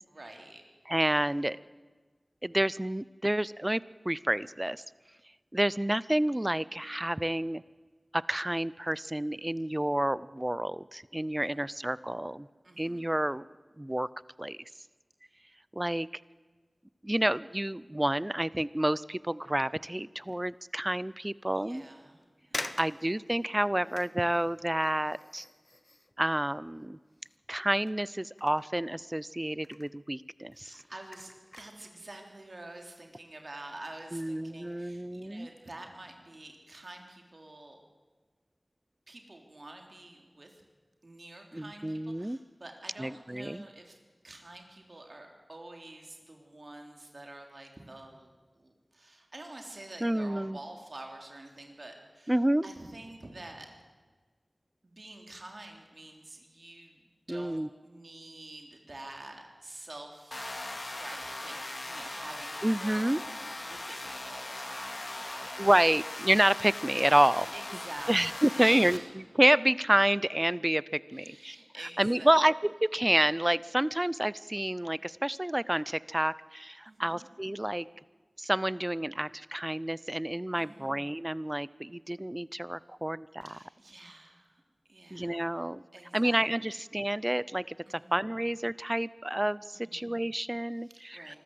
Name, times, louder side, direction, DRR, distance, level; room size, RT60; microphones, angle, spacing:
voice 1, 0.1-0.6 11.5-11.6 12.6-13.1 21.5-22.2 22.5-22.9 30.5-37.8 39.1-40.6 41.0-44.0 44.2-52.4 52.6-53.7 54.8-60.4 61.0-63.3 63.6-65.7 67.5-69.1 71.1-72.4 76.8-77.3 80.6-80.9 83.4-84.6 84.9-85.5 85.9-86.4 87.8-88.2 89.7-90.2 90.8-91.4, right 2 dB, 65° right, 3 dB, 3.4 m, -48 dB
voice 2, 0.9-1.6 2.4-4.8 5.5-7.6 8.1-12.5 12.8-13.4 13.8-14.1 14.4-14.6 15.7-16.1 17.0-21.8 22.8-25.5 26.2-27.0 27.5-30.8 34.1-35.5 41.5-42.4 43.0-43.6 50.0-50.6 52.3-52.7 57.3-57.7 62.6-63.2 65.6-67.5 68.1-69.0 69.3-71.6 72.0-77.9 78.4-83.6 85.1-85.8 86.1-91.3, right 1 dB, 20° right, 19 dB, 0.6 m, -29 dB
sound 1, 20.2-20.5 21.1-21.2 22.0-22.1 22.5-27.5 27.8-29.3 29.5-30.0 30.4-31.9 32.4-32.5, left 1 dB, 35° left, 0.9 m, -45 dB
sound 2, 60.3-69.0, left 2 dB, 55° left, 2.1 m, -39 dB
25.0 x 14.0 x 7.9 m, 1.4 s
wide cardioid pair, 40°, 0 cm